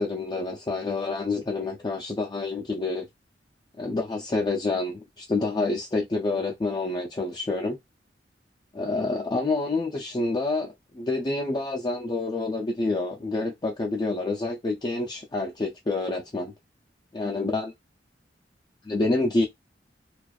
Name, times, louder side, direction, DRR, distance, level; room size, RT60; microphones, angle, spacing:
voice 1, 0.0-3.1 3.8-7.8 8.7-16.5 17.1-17.7 18.8-19.5, left 3 dB, 25° left, 0.4 m, -28 dB
2.4 x 2.3 x 2.3 m
head